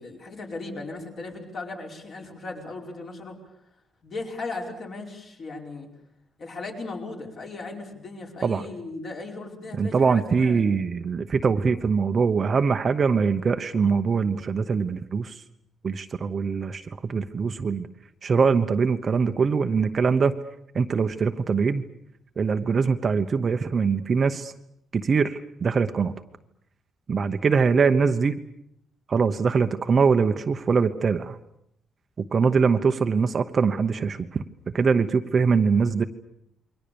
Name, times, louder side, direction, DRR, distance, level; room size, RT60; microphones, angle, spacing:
voice 1, 0.0-3.4 4.0-5.9 6.4-10.6 27.5-27.7, left 3 dB, 40° left, 1 dB, 5.1 m, -37 dB
voice 2, 9.7-15.4 15.8-17.9 18.2-20.3 20.7-21.8 22.4-24.5 24.9-26.1 27.1-28.4 29.1-31.4 32.2-36.0, right 5 dB, 30° right, 8 dB, 1.0 m, -23 dB
28.5 x 23.0 x 7.0 m, 0.76 s
cardioid pair, 160°, 0 cm